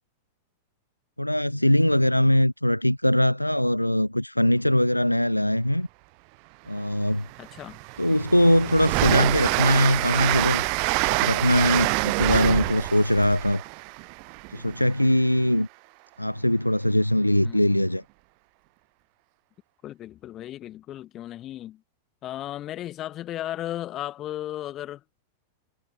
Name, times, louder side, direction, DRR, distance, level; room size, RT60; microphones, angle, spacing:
voice 1, 1.2-5.9 6.7-7.3 8.0-10.6 11.1-13.6 14.5-15.7 16.2-18.0, left 1 dB, 90° left, 0.4 m, -21 dB
Train, 6.8-6.9 7.3-15.0, right 40 dB or more, 45° right, 0.4 m, -26 dB
voice 2, 7.4-7.8 17.4-17.8 19.8-21.8 22.2-25.0, left 13 dB, 30° left, 1.5 m, -35 dB
figure-of-eight pair, 90°, 0 cm